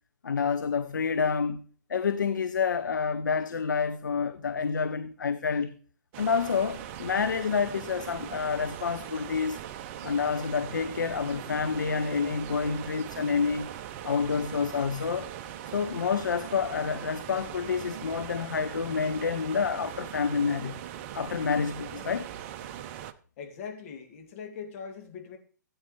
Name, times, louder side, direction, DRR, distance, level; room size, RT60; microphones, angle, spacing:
voice 1, 0.2-1.6 1.9-5.8 6.2-9.6 10.0-13.7 14.0-15.3 15.7-20.8 21.1-22.3, left 6 dB, 75° left, 0.7 m, -28 dB
sound 1, 6.1-23.1, right 11 dB, 40° right, 0.7 m, -40 dB
voice 2, 23.4-25.4, left 6 dB, 45° left, 2.3 m, -41 dB
15.5 x 8.7 x 3.2 m
figure-of-eight pair, 120°, 10 cm